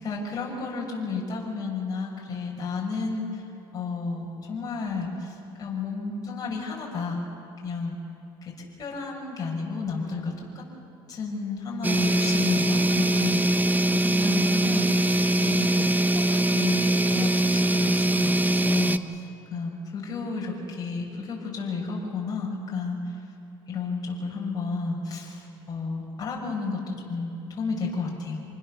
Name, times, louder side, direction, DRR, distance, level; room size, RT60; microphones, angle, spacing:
voice 1, 0.0-3.4 3.7-7.2 7.6-8.0 8.8-10.6 11.1-15.0 15.4-23.2 23.7-28.4, left 4 dB, 35° left, -3 dB, 6.9 m, -32 dB
sound 1, 11.8-19.0, right 1 dB, 15° right, 0.9 m, -22 dB
27.5 x 20.0 x 6.9 m, 2.8 s
supercardioid pair, 95°, 11 cm